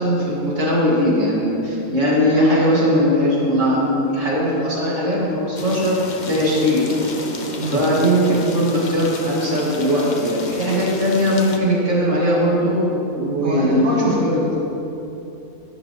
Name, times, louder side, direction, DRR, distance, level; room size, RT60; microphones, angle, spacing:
voice 1, 0.0-6.0 6.3-6.8 7.6-13.9 14.2-14.5, equal, 60° right, -5 dB, 2.4 m, -19 dB
sound 1, 5.6-11.6, left 3 dB, 40° left, 0.7 m, -32 dB
voice 2, 7.4-8.0 13.4-14.6, equal, 85° right, -4 dB, 1.6 m, -25 dB
11.0 x 11.0 x 3.0 m, 2.9 s
omnidirectional pair, 1.4 m